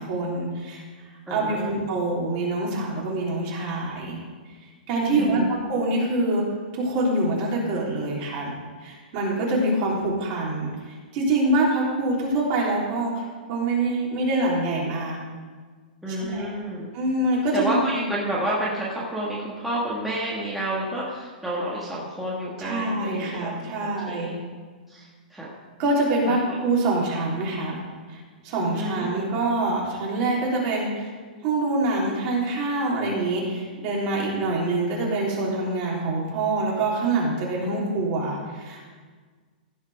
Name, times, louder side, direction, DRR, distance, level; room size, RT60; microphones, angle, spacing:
voice 1, 0.0-4.2 4.6-6.4 6.7-8.5 8.8-15.2 16.1-16.5 16.9-17.8 22.6-24.3 25.8-27.8 28.1-31.1 31.4-38.9, right 2 dB, 40° right, -4 dB, 3.5 m, -25 dB
voice 2, 1.3-1.8 5.2-5.5 16.0-16.9 17.5-24.5 24.9-25.5 26.2-26.4 28.7-29.3, right 1 dB, 5° right, -7 dB, 1.6 m, -30 dB
15.5 x 5.6 x 5.0 m, 1.5 s
hypercardioid pair, 145°, 5 cm